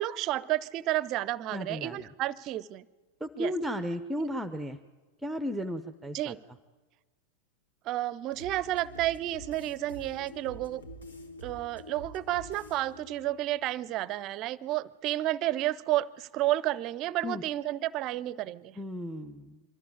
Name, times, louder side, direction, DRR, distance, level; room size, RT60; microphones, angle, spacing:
voice 1, 0.0-2.9 3.4-3.5 6.1-6.4 7.8-10.8 11.4-18.8, right 15 dB, 35° right, 0.6 m, -31 dB
voice 2, 1.5-2.1 3.2-4.8 5.2-6.3 17.2-17.4 18.8-19.6, equal, 5° right, 0.8 m, -34 dB
sound 1, 8.3-14.3 14.7-14.8, right 1 dB, 70° left, 2.3 m, -47 dB
24.0 x 14.0 x 8.9 m
figure-of-eight pair, 90°, 0 cm